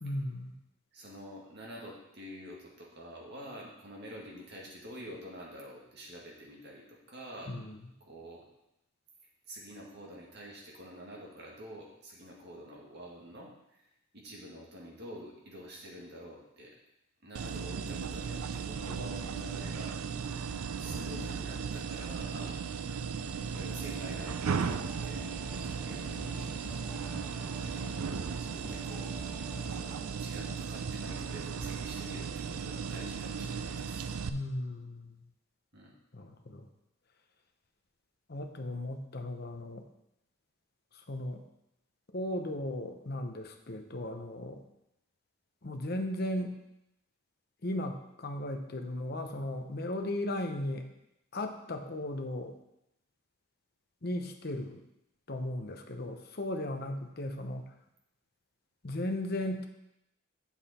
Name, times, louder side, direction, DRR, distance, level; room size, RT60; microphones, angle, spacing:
voice 1, 0.0-0.5 7.5-7.8 34.3-35.1 36.1-36.7 38.3-39.8 41.1-41.4 42.1-44.6 45.6-46.6 47.6-50.8 51.3-52.6 54.0-54.8 55.3-57.7 58.8-59.7, left 1 dB, 45° left, 5 dB, 0.9 m, -36 dB
voice 2, 0.9-7.6 8.0-8.5 9.5-13.9 14.1-16.7 17.2-20.0 20.3-22.6 23.5-25.2 25.8-26.6 27.6-29.1 30.1-34.0 35.7-35.9, equal, 50° right, -2 dB, 2.0 m, -47 dB
sound 1, 17.3-34.3, right 6 dB, 90° right, 0.5 m, -36 dB
sound 2, 23.7-30.2, right 1 dB, 5° right, 1.8 m, -47 dB
7.9 x 7.3 x 4.3 m, 0.84 s
head